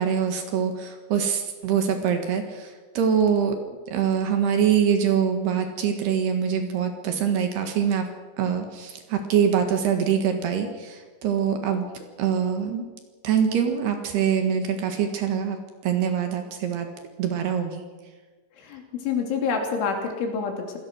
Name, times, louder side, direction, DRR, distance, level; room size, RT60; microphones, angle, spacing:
voice 1, 0.0-3.6 3.9-8.1 8.4-12.9 13.2-15.6 15.8-16.9 17.2-17.8, right 7 dB, 65° right, 6 dB, 3.3 m, -24 dB
voice 2, 18.6-20.8, left 5 dB, 75° left, 2 dB, 5.4 m, -27 dB
26.5 x 17.5 x 6.3 m, 1.3 s
omnidirectional pair, 5.6 m